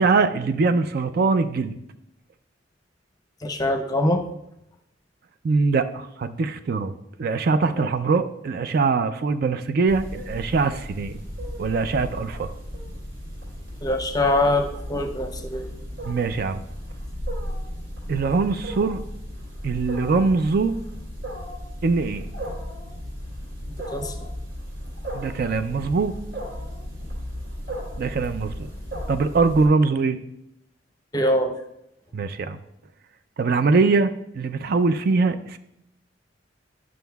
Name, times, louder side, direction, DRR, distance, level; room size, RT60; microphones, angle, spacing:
voice 1, 0.0-1.8 5.4-6.9 7.2-11.2 11.6-12.5 16.0-16.6 18.1-19.0 19.6-20.7 21.8-22.3 25.1-26.2 28.0-28.7 29.1-30.2 32.1-32.6 33.4-35.6, right 4 dB, 55° right, 10 dB, 0.4 m, -22 dB
voice 2, 3.4-4.2 7.7-7.9 13.8-15.7 23.9-24.1 31.1-31.5, left 1 dB, 20° left, 5 dB, 0.6 m, -23 dB
Wild animals, 9.9-29.7, equal, 80° right, 3.1 m, -35 dB
11.0 x 6.2 x 2.3 m, 0.79 s
head